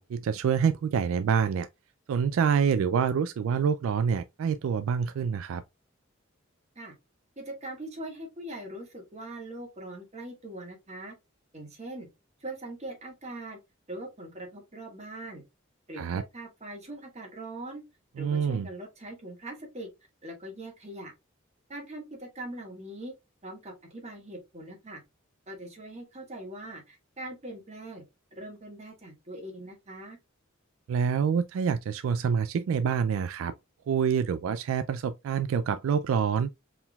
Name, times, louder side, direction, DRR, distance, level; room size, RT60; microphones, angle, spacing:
voice 1, 0.0-1.7 2.1-5.6 16.0-16.2 18.2-18.7 30.9-33.5 33.9-36.5, right 7 dB, 75° right, 0.3 m, -26 dB
voice 2, 7.4-11.1 11.5-12.1 12.4-13.6 13.9-15.4 15.9-17.8 18.2-19.9 20.2-21.1 21.7-23.1 23.4-25.0 25.5-28.0 28.3-30.2, right 1 dB, 35° right, 1.6 m, -41 dB
4.5 x 3.7 x 2.3 m
head